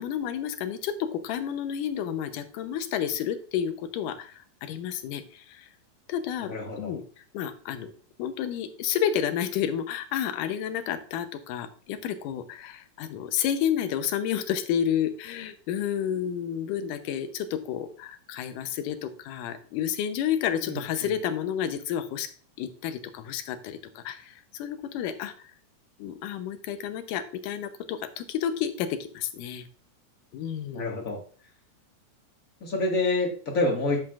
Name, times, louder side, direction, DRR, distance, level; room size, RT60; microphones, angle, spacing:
voice 1, 0.0-4.3 4.6-5.7 6.1-7.0 7.3-7.9 8.2-22.3 22.6-25.3 26.0-29.7 30.3-31.0, left 9 dB, 85° left, 9 dB, 2.4 m, -30 dB
voice 2, 6.4-6.9 20.6-21.1 30.7-31.2 32.6-34.0, left 2 dB, 40° left, 1 dB, 1.3 m, -28 dB
11.0 x 7.6 x 2.4 m, 0.43 s
omnidirectional pair, 3.6 m